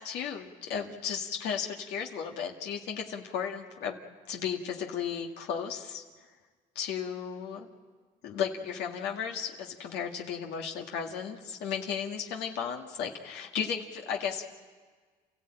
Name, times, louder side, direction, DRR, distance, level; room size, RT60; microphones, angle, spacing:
voice 1, 0.0-4.0 4.3-6.0 6.8-7.7 8.2-14.5, left 7 dB, 85° left, 1 dB, 1.9 m, -34 dB
29.0 x 15.0 x 8.9 m, 1.5 s
cardioid pair, 110°, 17 cm